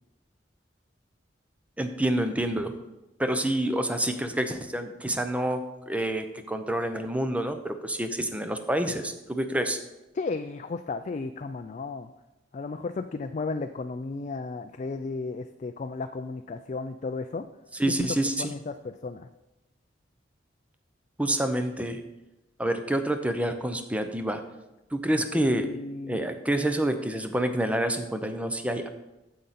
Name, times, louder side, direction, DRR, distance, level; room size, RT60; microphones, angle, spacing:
voice 1, 1.8-2.7 3.2-9.8 17.7-18.5 21.2-22.0 22.6-24.4 24.9-25.7 26.1-28.9, right 1 dB, 10° right, 7 dB, 0.7 m, -28 dB
voice 2, 10.1-12.1 12.5-17.4 18.0-18.1 18.4-19.3 25.3-26.3, left 3 dB, 40° left, 8 dB, 0.4 m, -34 dB
9.1 x 7.7 x 4.2 m, 0.99 s
head